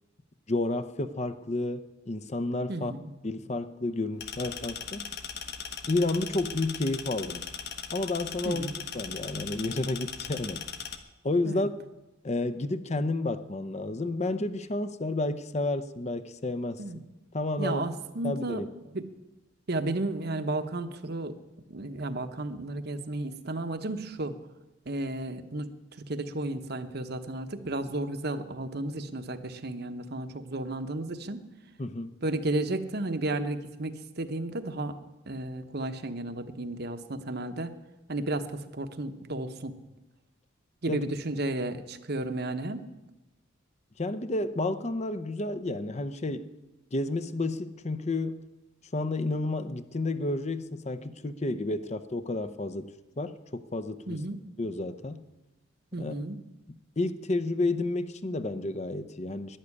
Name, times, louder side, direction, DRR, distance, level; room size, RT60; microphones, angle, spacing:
voice 1, 0.5-2.9 3.2-5.1 5.9-7.5 7.9-8.7 8.9-10.6 11.2-11.7 12.2-16.8 17.3-17.8 18.2-18.7 31.8-32.1 40.9-41.0 44.0-46.5 46.9-48.4 48.9-52.9 53.2-54.2 54.6-55.2 56.0-56.1 57.0-59.6, left 2 dB, 35° left, 0.7 m, -31 dB
voice 2, 2.7-3.1 8.4-8.7 11.4-11.6 16.8-17.0 17.6-18.6 18.9-19.0 19.7-21.3 21.7-24.3 24.9-25.7 26.1-31.4 32.2-35.0 35.3-37.7 38.1-39.7 40.8-42.9 54.1-54.4 55.9-56.4, right 2 dB, 50° right, 1.0 m, -33 dB
sound 1, 4.2-11.0, left 7 dB, 50° left, 1.2 m, -39 dB
12.0 x 11.0 x 9.8 m
head